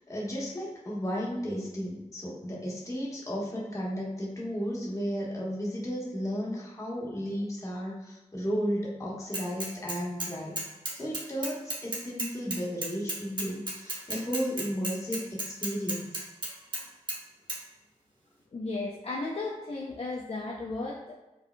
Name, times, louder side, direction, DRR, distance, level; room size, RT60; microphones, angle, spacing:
voice 1, 0.1-10.6 10.9-16.2, equal, 25° left, -5 dB, 1.4 m, -34 dB
Bicycle / Mechanisms, 9.3-10.3 10.6-16.8 17.1-17.2 17.5-17.6, right 1 dB, 35° right, 1.2 m, -33 dB
voice 2, 18.5-21.2, left 3 dB, 50° left, -2 dB, 0.6 m, -35 dB
4.9 x 4.7 x 2.2 m, 1.0 s
wide cardioid pair, 120°, 13 cm